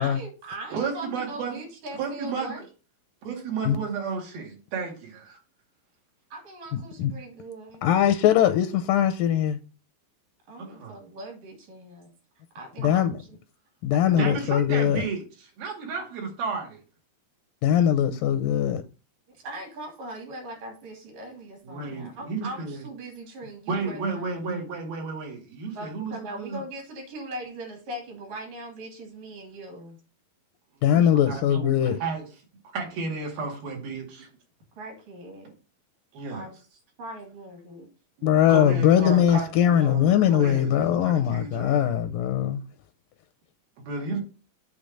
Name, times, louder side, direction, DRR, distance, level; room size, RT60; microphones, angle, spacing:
voice 1, 0.0-2.6 6.3-7.8 10.5-12.1 12.6-13.4 13.9-15.1 19.3-24.4 25.8-30.0 34.8-35.5 36.1-36.6 37.0-37.9 44.0-44.2, right 1 dB, 65° right, 4.2 m, -40 dB
voice 2, 0.7-1.6 1.9-2.6 3.2-5.3 10.6-11.0 12.9-13.0 14.1-16.8 21.7-22.9 23.7-26.6 31.3-32.3 32.7-34.3 36.1-36.5 38.2-40.7 41.0-42.0 43.8-44.2, right 4 dB, 80° right, 4.2 m, -32 dB
voice 3, 6.7-7.1 7.8-9.6 12.8-13.1 13.8-15.0 17.6-18.8 30.8-32.0 38.2-42.6, left 10 dB, 80° left, 2.1 m, -21 dB
8.3 x 3.5 x 6.5 m
omnidirectional pair, 4.2 m